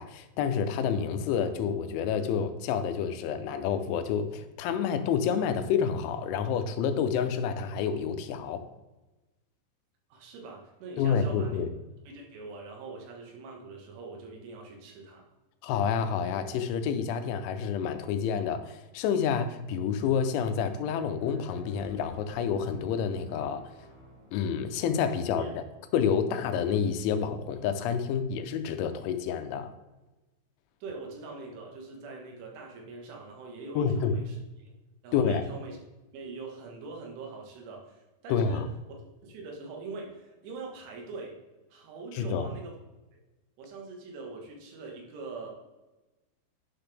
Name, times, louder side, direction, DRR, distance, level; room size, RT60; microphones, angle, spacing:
voice 1, 0.0-8.6 11.0-11.7 15.6-23.7 24.3-25.6 25.9-29.7 33.8-34.2 35.1-35.4 38.3-38.7 42.1-42.5, left 7 dB, 85° left, 8 dB, 3.1 m, -29 dB
voice 2, 10.1-11.6 12.1-15.3 25.4-25.5 30.8-34.7 35.0-35.8 36.1-38.6 39.2-41.4 41.7-42.8 43.6-45.5, right 3 dB, 90° right, 0 dB, 3.9 m, -43 dB
sound 1, 16.2-16.8 17.4-17.5 18.4-18.5 18.8-18.9 19.8-22.4 22.9-23.0 23.3-23.6 23.9-25.2, left 4 dB, 65° left, 3.7 m, -53 dB
sound 2, 21.7-25.2, right 1 dB, 50° right, 3.9 m, -54 dB
10.5 x 5.9 x 3.4 m, 1.1 s
omnidirectional pair, 5.3 m